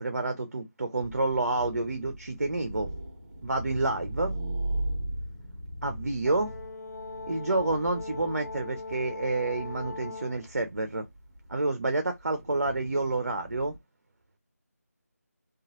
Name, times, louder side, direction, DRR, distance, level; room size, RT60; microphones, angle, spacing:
voice 1, 0.0-2.9 3.4-4.3 5.8-6.5 7.3-11.1 11.5-13.7, right 2 dB, 55° right, 0.7 m, -29 dB
sound 1, 1.0-13.8, right 1 dB, 30° right, 1.1 m, -39 dB
Brass instrument, 6.2-10.5, left 3 dB, 80° left, 1.0 m, -40 dB
3.1 x 2.4 x 2.5 m
figure-of-eight pair, 165°, 9 cm